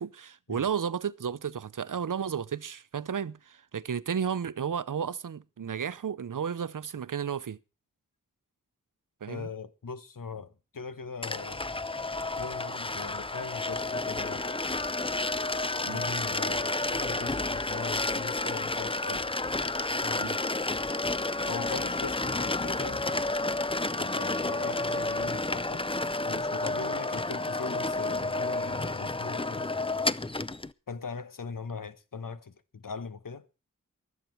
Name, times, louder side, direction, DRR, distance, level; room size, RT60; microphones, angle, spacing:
voice 1, 0.0-7.6 9.2-9.5 15.8-16.0 20.2-20.4, right 7 dB, 70° right, 0.7 m, -33 dB
voice 2, 9.3-11.6 12.4-14.5 15.9-19.3 19.9-20.2 21.5-23.3 23.9-25.9 26.2-29.7 30.9-33.4, left 5 dB, 80° left, 1.2 m, -40 dB
sound 1, 11.2-30.7, left 2 dB, 15° left, 0.6 m, -31 dB
23.0 x 8.4 x 4.5 m
wide cardioid pair, 45°, 32 cm